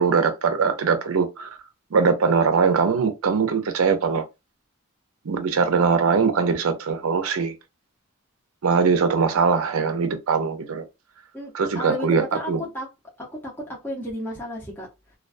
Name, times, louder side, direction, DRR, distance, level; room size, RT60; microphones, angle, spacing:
voice 1, 0.0-1.5 1.9-4.3 5.2-7.5 8.6-10.8 11.5-12.6, right 5 dB, 75° right, 0.5 m, -21 dB
voice 2, 11.3-12.1 12.3-12.9 13.2-13.5 13.8-14.9, equal, 10° left, 0.6 m, -33 dB
2.3 x 2.2 x 2.4 m
head